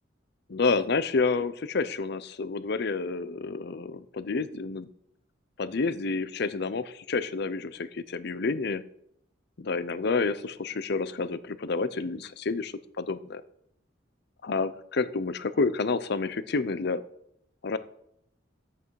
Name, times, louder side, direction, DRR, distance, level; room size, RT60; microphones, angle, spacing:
voice 1, 0.5-4.9 5.6-8.8 9.6-13.4 14.4-17.0 17.6-17.8, left 4 dB, 60° left, 15 dB, 0.6 m, -29 dB
12.5 x 8.3 x 4.7 m, 0.73 s
head